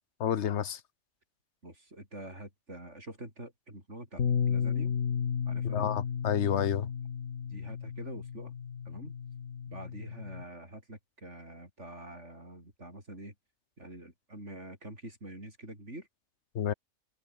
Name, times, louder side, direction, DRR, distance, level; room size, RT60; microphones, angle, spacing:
voice 1, 0.2-0.8 5.7-6.9 16.5-16.7, left 9 dB, 65° left, 1.1 m, -29 dB
voice 2, 1.6-4.9 5.5-5.9 7.5-8.5 8.8-9.1 9.7-13.3 13.8-16.1, right 1 dB, 65° right, 8.5 m, -46 dB
Bass guitar, 4.2-10.4, left 7 dB, 85° left, 1.7 m, -33 dB
omnidirectional pair, 1.3 m